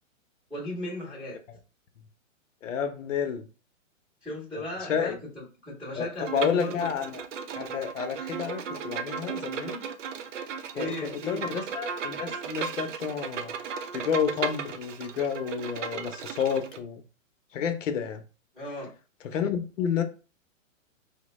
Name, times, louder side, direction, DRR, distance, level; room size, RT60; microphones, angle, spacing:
voice 1, 0.5-1.4 4.2-6.9 10.7-11.5 18.5-18.9, left 1 dB, ahead, 0.7 m, -36 dB
voice 2, 2.6-3.5 4.5-4.6 4.9-5.2 6.0-7.2 7.6-9.9 10.8-13.5 13.9-17.0 17.5-18.2 19.3-20.0, left 7 dB, 70° left, 0.8 m, -30 dB
Bowed string instrument, 6.2-16.8, right 6 dB, 65° right, 0.6 m, -35 dB
4.4 x 2.2 x 3.0 m
hypercardioid pair, 170°, 40 cm